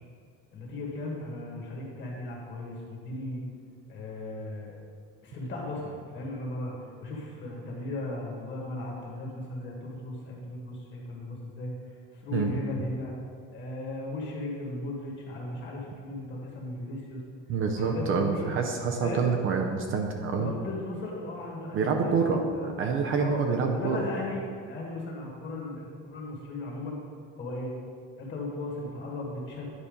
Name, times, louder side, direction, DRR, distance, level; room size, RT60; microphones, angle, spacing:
voice 1, 0.5-3.4 3.9-4.8 5.2-6.7 7.0-13.1 13.5-17.2 17.8-18.5 19.0-19.3 20.3-22.7 23.2-23.4 23.7-27.0 27.3-27.7 28.2-29.7, left 2 dB, 35° left, -2 dB, 1.5 m, -36 dB
voice 2, 17.5-20.5 21.7-24.0, right 5 dB, 40° right, 3 dB, 0.5 m, -27 dB
9.8 x 4.2 x 5.1 m, 2.1 s
cardioid pair, 180°, 32 cm